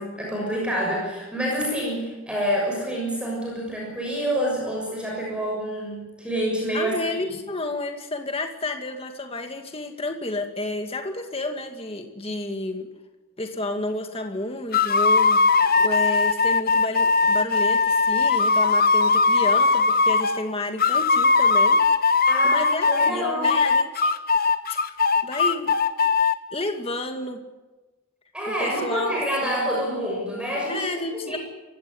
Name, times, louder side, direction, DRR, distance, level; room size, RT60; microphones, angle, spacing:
voice 1, 0.0-6.9 7.2-7.3 22.3-23.6 28.3-30.9 31.3-31.4, equal, 5° right, -2 dB, 6.7 m, -27 dB
voice 2, 6.7-12.9 13.4-21.8 22.2-24.1 24.7-24.8 25.2-25.8 26.5-27.4 28.5-29.7 30.7-31.4, left 2 dB, 25° left, 5 dB, 2.2 m, -31 dB
sound 1, 14.7-20.4 20.8-23.1 23.4-26.3, left 4 dB, 45° left, 1.0 m, -19 dB
26.0 x 16.0 x 9.9 m, 1.2 s
head